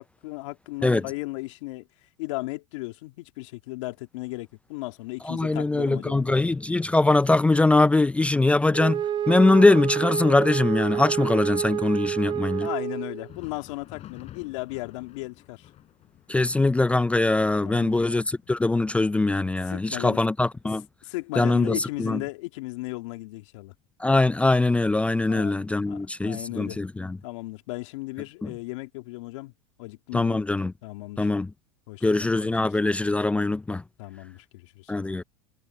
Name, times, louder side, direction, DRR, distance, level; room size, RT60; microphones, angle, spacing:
voice 1, 0.0-1.9 2.2-6.6 12.6-15.7 17.6-18.0 19.7-20.2 21.0-23.7 25.3-25.6 25.9-26.8 27.2-29.5 29.8-30.4 30.8-31.3 31.9-32.5 34.0-34.9, left 22 dB, 70° left, 2.2 m, -36 dB
voice 2, 5.2-9.0 9.3-12.7 16.3-20.8 21.4-22.2 24.0-27.2 28.4-28.5 30.1-30.7 31.2-31.5 32.0-33.8 34.9-35.2, left 2 dB, 10° left, 0.4 m, -22 dB
Wind instrument woodwind instrument, 8.7-13.3, right 10 dB, 30° right, 0.7 m, -28 dB
Thunder, 13.1-22.5 22.8-23.0 23.7-23.9 24.9-25.0, left 12 dB, 40° left, 5.9 m, -52 dB
hypercardioid pair, 110°, 16 cm